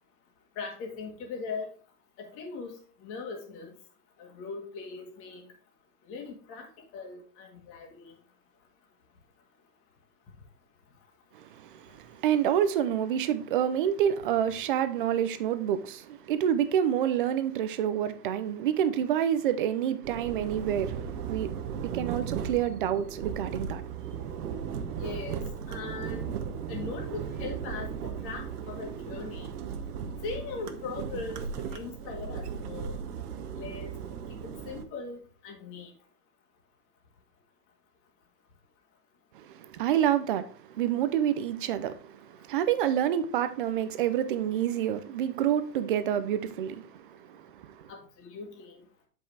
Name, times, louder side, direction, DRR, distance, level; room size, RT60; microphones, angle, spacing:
voice 1, 0.5-1.7 2.2-3.7 4.2-5.5 6.1-6.7 6.9-8.1 25.0-26.4 26.7-29.5 30.2-31.4 31.7-33.0 33.5-33.9 34.4-35.9 47.9-48.8, left 4 dB, 25° left, 1.8 m, -40 dB
voice 2, 11.3-23.9 39.3-47.8, right 10 dB, 35° right, 0.5 m, -28 dB
sound 1, 20.0-34.8, right 7 dB, 65° right, 1.1 m, -36 dB
8.0 x 5.5 x 3.3 m
hypercardioid pair, 155°, 49 cm